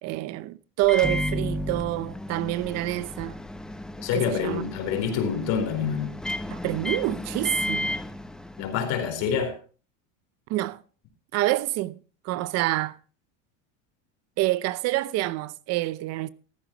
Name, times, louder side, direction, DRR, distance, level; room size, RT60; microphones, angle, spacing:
voice 1, 0.0-3.4 4.1-4.7 6.5-8.0 10.5-10.8 11.3-12.0 12.2-13.0 14.4-16.3, right 17 dB, 40° right, 0.7 m, -27 dB
Microwave oven, 0.8-9.0, left 1 dB, ahead, 0.5 m, -33 dB
voice 2, 4.0-6.1 8.6-9.5, left 7 dB, 50° left, 4.3 m, -27 dB
15.0 x 14.5 x 3.0 m
supercardioid pair, 145°, 38 cm